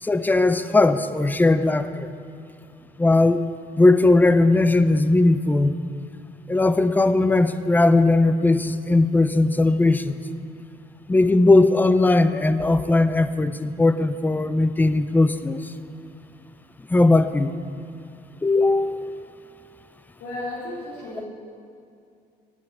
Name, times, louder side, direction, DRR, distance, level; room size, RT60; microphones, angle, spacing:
voice 1, 0.0-2.1 3.0-3.5 3.8-5.8 6.5-10.2 11.1-15.6 16.9-17.5 18.4-19.3, left 2 dB, 10° left, 11 dB, 0.5 m, -18 dB
voice 2, 20.2-21.3, left 2 dB, 85° left, -9 dB, 3.3 m, -33 dB
9.1 x 7.6 x 9.2 m, 2.4 s
cardioid pair, 110°, 17 cm